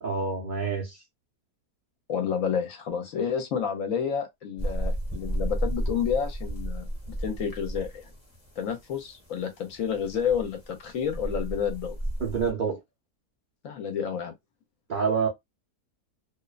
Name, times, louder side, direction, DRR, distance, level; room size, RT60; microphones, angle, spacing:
voice 1, 0.0-1.0 12.2-12.8 14.9-15.3, right 5 dB, 75° right, 0.4 m, -27 dB
voice 2, 2.1-6.9 7.2-8.1 8.6-12.0 13.6-14.3, left 7 dB, 70° left, 0.9 m, -30 dB
sound 1, 4.6-12.5, right 1 dB, 10° left, 0.8 m, -34 dB
2.6 x 2.1 x 2.3 m
omnidirectional pair, 1.7 m